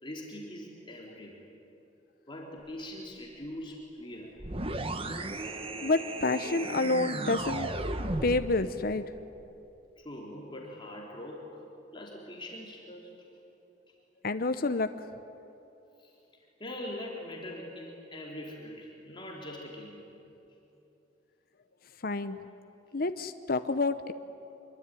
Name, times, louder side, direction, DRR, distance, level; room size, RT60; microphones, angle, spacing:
voice 1, 0.0-1.4 2.3-4.3 10.0-11.6 11.9-13.1 16.0-16.1 16.6-20.1, left 1 dB, 25° left, -2 dB, 3.6 m, -42 dB
sound 1, 4.4-8.6, right 2 dB, 30° right, 1.4 m, -35 dB
voice 2, 5.8-7.7 8.2-9.0 14.2-14.9 22.0-22.4 22.9-24.1, left 3 dB, 55° left, 9 dB, 0.8 m, -28 dB
25.5 x 23.0 x 9.9 m, 2.9 s
head